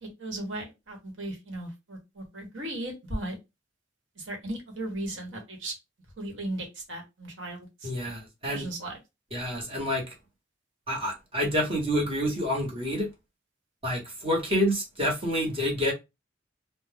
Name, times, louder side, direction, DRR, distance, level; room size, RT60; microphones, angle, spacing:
voice 1, 0.0-3.4 4.2-5.7 6.2-7.9 8.4-9.0, right 1 dB, 80° right, 1.1 m, -36 dB
voice 2, 7.8-8.7 9.3-10.0 10.9-13.1 13.8-15.9, equal, 30° right, 1.1 m, -28 dB
2.4 x 2.1 x 3.3 m
head